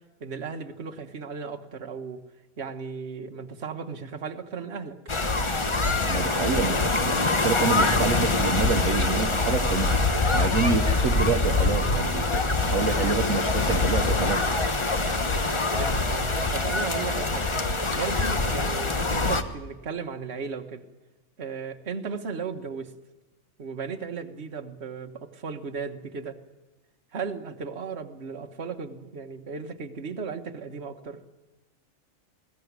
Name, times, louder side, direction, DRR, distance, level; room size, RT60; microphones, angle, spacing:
voice 1, 0.2-2.2 2.6-5.0 15.7-17.5 17.9-20.8 21.4-22.9 23.6-26.4 27.1-31.2, right 5 dB, 50° right, 6 dB, 1.6 m, -35 dB
sound 1, 5.1-19.4, left 3 dB, 25° left, 1.1 m, -24 dB
voice 2, 6.1-10.0 10.3-14.5, right 5 dB, 75° right, 7 dB, 1.3 m, -28 dB
21.0 x 16.5 x 9.5 m, 1.2 s
omnidirectional pair, 1.4 m